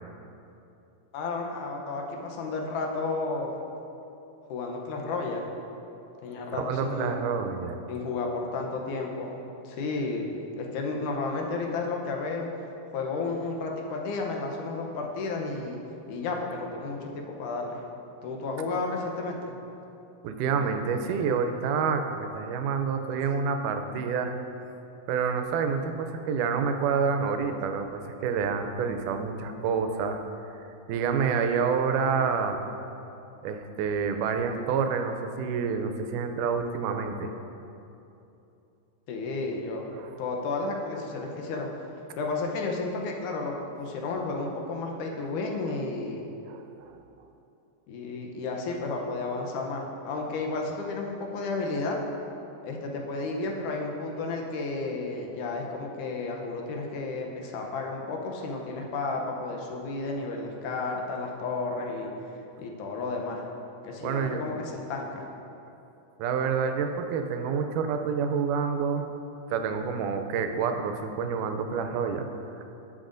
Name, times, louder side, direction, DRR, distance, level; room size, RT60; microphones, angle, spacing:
voice 1, 1.1-3.5 4.5-5.5 6.2-7.1 7.9-9.4 9.6-12.5 12.9-15.8 16.1-17.8 18.2-19.5 39.1-39.9 40.2-41.7 42.2-46.3 47.9-52.0 52.6-62.1 62.6-63.4 63.8-65.3, left 3 dB, 80° left, 1 dB, 2.3 m, -32 dB
voice 2, 6.6-7.8 20.2-24.4 25.1-30.2 30.9-32.7 33.4-37.3 39.9-40.2 46.5-47.0 64.0-64.4 66.2-69.1 69.5-72.3, right 6 dB, 85° right, 6 dB, 2.1 m, -28 dB
11.5 x 7.7 x 2.6 m, 2.8 s
omnidirectional pair, 3.5 m